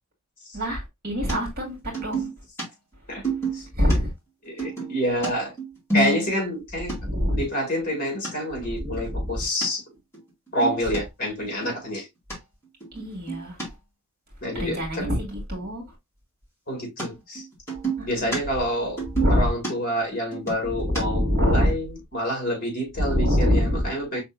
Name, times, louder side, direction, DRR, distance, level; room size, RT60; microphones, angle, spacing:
voice 1, 0.5-2.3 3.0-3.2 3.7-4.1 7.0-7.4 8.7-9.5 12.9-13.6 14.5-16.0 18.0-18.3 19.1-19.5 20.7-21.7 23.0-23.9, equal, 45° right, 2.1 m, -25 dB
sound 1, 1.3-1.4 1.9-2.6 3.2-4.0 4.6-6.6 6.9-7.0 7.4-7.5 7.8-8.3 8.8-9.0 9.6-9.7 10.1-10.2 10.5-11.0 11.4-11.8 12.3-12.4 12.8-13.7 17.0-17.1 17.3-18.4 18.7-21.0, right 3 dB, 10° left, 2.4 m, -29 dB
voice 2, 4.4-5.5 5.9-7.0 7.3-9.8 10.5-12.1 14.4-15.2 16.7-17.4 18.1-19.0 19.3-21.9 22.1-24.2, equal, 40° left, 2.0 m, -27 dB
5.2 x 3.5 x 2.3 m
head